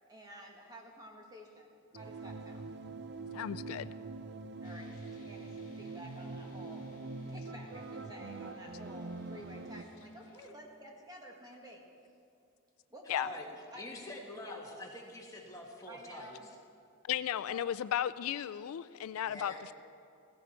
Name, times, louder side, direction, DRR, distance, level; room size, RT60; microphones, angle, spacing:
voice 1, 0.1-2.6 4.6-6.9 7.3-11.8 12.9-13.4 13.7-13.9 14.4-14.7 15.8-16.5 17.5-17.7, equal, 20° right, 0 dB, 1.7 m, -51 dB
sound 1, 1.9-9.8, right 3 dB, 50° right, 0.6 m, -44 dB
voice 2, 3.3-3.9 13.1-13.3 17.1-19.7, left 10 dB, 80° left, 14 dB, 0.3 m, -35 dB
sound 2, 4.6-10.4, equal, 40° left, 1.7 m, -56 dB
voice 3, 13.2-13.5 13.7-16.4 19.3-19.6, left 2 dB, 15° left, -2 dB, 1.8 m, -44 dB
16.0 x 16.0 x 4.4 m, 2.5 s
head